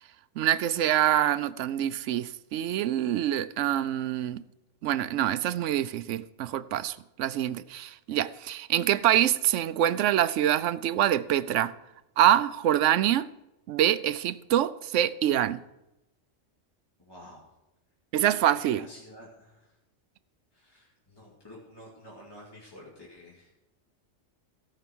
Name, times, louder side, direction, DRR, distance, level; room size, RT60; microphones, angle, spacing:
voice 1, 0.4-4.4 4.8-11.7 12.2-13.3 13.7-15.6 18.1-18.9, right 11 dB, 80° right, 0.9 m, -25 dB
voice 2, 17.1-17.4 18.6-19.7 20.5-23.5, left 1 dB, 20° left, 2.4 m, -50 dB
17.0 x 5.8 x 6.1 m
omnidirectional pair, 1.2 m